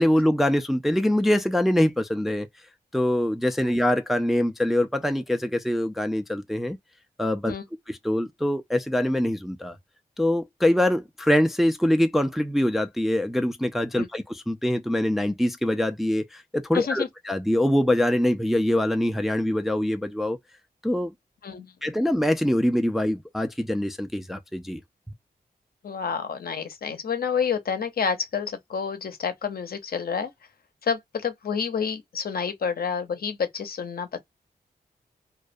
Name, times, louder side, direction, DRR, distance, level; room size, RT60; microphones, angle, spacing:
voice 1, 0.0-2.5 2.9-6.8 7.2-7.5 7.9-9.8 10.2-20.4 20.8-21.1 21.8-24.8, left 1 dB, ahead, 0.4 m, -24 dB
voice 2, 16.7-17.1 21.4-21.9 25.8-30.3 30.8-34.2, left 6 dB, 65° left, 0.7 m, -29 dB
2.3 x 2.1 x 2.5 m
cardioid pair, 65°, 16 cm